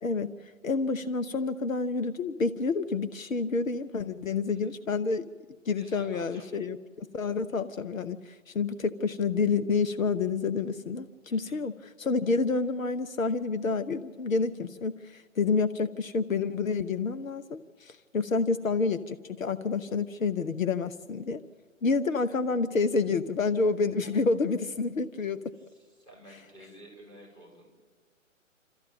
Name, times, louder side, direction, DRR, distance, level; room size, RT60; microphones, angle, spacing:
voice 1, 0.0-5.3 5.7-11.7 12.0-21.4 21.8-25.4, left 4 dB, 75° left, 11 dB, 1.0 m, -29 dB
voice 2, 5.8-6.5 11.3-11.6 18.6-18.7 24.0-24.2 25.5-27.7, right 1 dB, 10° left, -1 dB, 7.0 m, -51 dB
28.0 x 13.5 x 8.6 m, 1.4 s
figure-of-eight pair, 130°, 40 cm